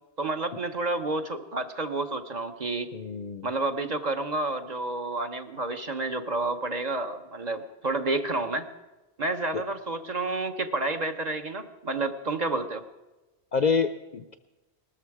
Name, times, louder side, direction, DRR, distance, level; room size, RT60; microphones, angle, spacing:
voice 1, 0.2-2.9 3.4-8.7 9.2-12.8, right 2 dB, 40° right, 6 dB, 0.9 m, -30 dB
voice 2, 2.9-3.5 9.5-9.6 13.5-14.4, left 5 dB, 50° left, 10 dB, 0.6 m, -27 dB
19.0 x 13.5 x 4.8 m, 1.1 s
omnidirectional pair, 1.2 m